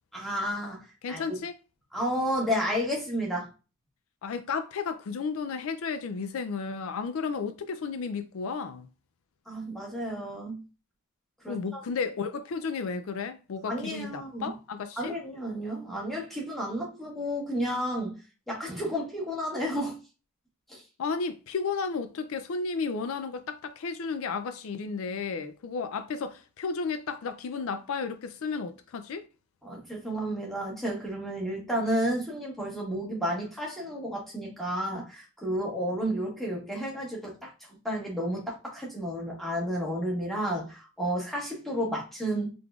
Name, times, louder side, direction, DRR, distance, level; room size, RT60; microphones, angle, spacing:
voice 1, 0.1-1.2 1.9-3.5 9.5-10.6 11.4-11.8 13.6-14.5 15.0-18.1 18.5-20.0 20.7-20.8 29.6-42.5, equal, ahead, 1.3 m, -32 dB
voice 2, 1.0-1.6 4.2-8.9 11.5-15.1 21.0-29.3, left 5 dB, 70° left, 0.4 m, -33 dB
3.9 x 3.2 x 2.4 m
head